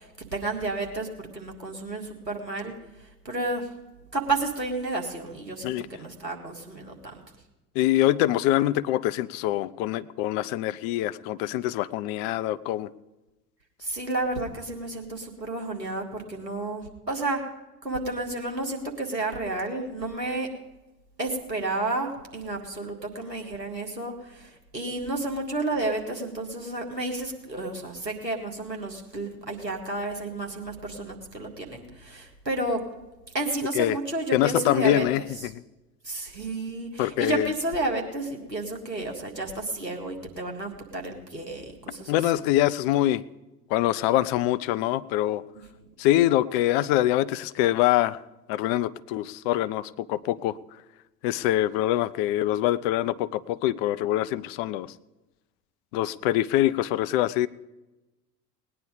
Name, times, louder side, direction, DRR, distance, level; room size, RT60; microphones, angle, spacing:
voice 1, 0.0-3.7 4.1-7.2 13.8-17.4 17.8-20.5 21.2-32.8 33.3-35.1 35.4-35.5 36.0-42.2, right 2 dB, 90° right, 1 dB, 1.9 m, -31 dB
voice 2, 7.8-12.9 33.7-34.0 34.3-35.6 37.0-37.5 42.1-43.2 43.7-45.4 46.0-48.2 48.5-50.6 51.2-54.9 55.9-57.5, left 14 dB, 40° left, 16 dB, 0.5 m, -24 dB
19.0 x 9.8 x 5.1 m, 1.1 s
figure-of-eight pair, 70°, 48 cm